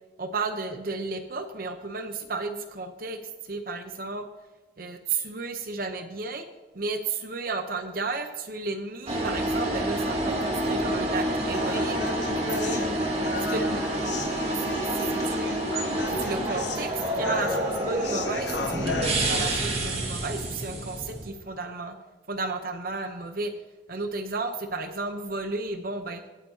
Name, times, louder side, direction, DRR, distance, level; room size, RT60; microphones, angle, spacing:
voice 1, 0.2-4.3 4.8-6.5 6.7-12.0 12.3-12.9 13.3-13.8 14.5-14.6 14.9-15.6 16.1-22.0 22.3-23.5 23.9-26.2, right 3 dB, 55° right, 7 dB, 0.8 m, -33 dB
sound 1, 9.1-21.3, right 1 dB, 35° right, 1.9 m, -28 dB
Human voice, 11.5-19.5, left 4 dB, 75° left, 1.1 m, -36 dB
19.0 x 9.3 x 2.8 m, 1.2 s
head